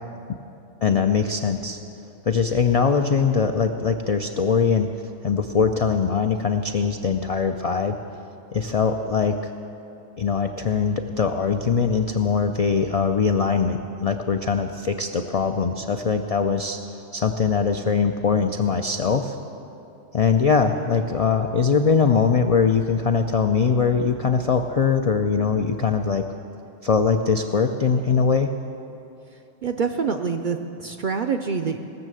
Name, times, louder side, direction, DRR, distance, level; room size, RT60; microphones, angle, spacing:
voice 1, 0.8-1.8 2.3-4.9 5.2-8.0 8.5-9.4 10.2-16.8 17.1-19.4 20.1-26.3 26.8-28.5, left 5 dB, 65° left, 5 dB, 0.3 m, -21 dB
voice 2, 29.6-31.8, right 5 dB, 60° right, 6 dB, 0.5 m, -26 dB
19.0 x 6.5 x 7.6 m, 2.7 s
omnidirectional pair, 1.3 m